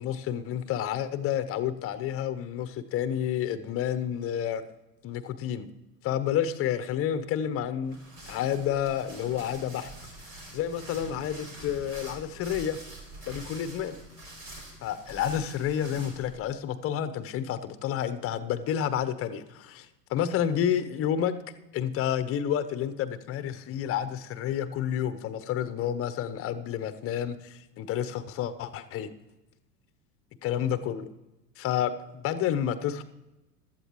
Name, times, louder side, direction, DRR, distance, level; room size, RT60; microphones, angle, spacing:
voice 1, 0.0-4.6 5.0-5.7 6.0-8.0 8.2-9.9 10.5-12.8 13.3-14.0 14.8-21.4 21.7-29.1 30.4-31.1 31.6-33.0, left 9 dB, 30° left, 12 dB, 0.8 m, -30 dB
sound 1, 7.8-16.4, right 1 dB, 60° right, 4.2 m, -45 dB
16.0 x 12.5 x 3.1 m, 0.99 s
figure-of-eight pair, 85°, 49 cm